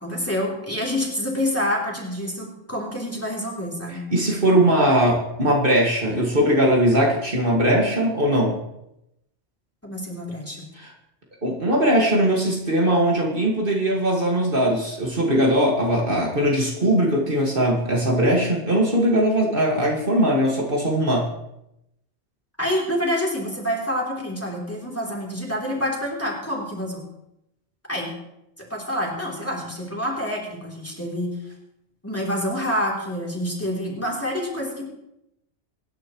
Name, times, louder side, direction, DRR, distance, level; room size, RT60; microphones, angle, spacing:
voice 1, 0.0-4.0 9.8-10.7 22.6-27.0 27.9-28.1 28.6-31.5 32.0-34.9, equal, 10° left, -2 dB, 3.2 m, -27 dB
voice 2, 4.1-8.6 10.7-10.9 11.4-21.3, right 1 dB, 50° right, -2 dB, 2.2 m, -20 dB
23.5 x 10.5 x 3.1 m, 0.84 s
omnidirectional pair, 1.1 m